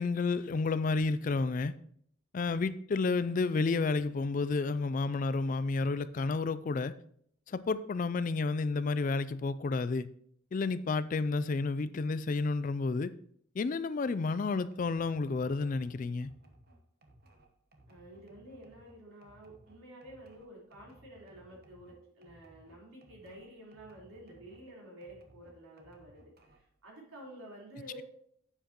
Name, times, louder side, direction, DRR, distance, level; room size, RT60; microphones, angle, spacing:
voice 1, 0.0-1.7 2.3-6.9 7.5-10.1 10.5-13.1 13.6-16.3, left 3 dB, 40° left, 15 dB, 0.3 m, -31 dB
sound 1, 14.7-24.7 25.0-26.8, right 1 dB, 45° right, 1.1 m, -61 dB
voice 2, 17.9-28.0, right 1 dB, 85° right, -4 dB, 3.7 m, -51 dB
9.8 x 8.0 x 3.0 m, 0.66 s
head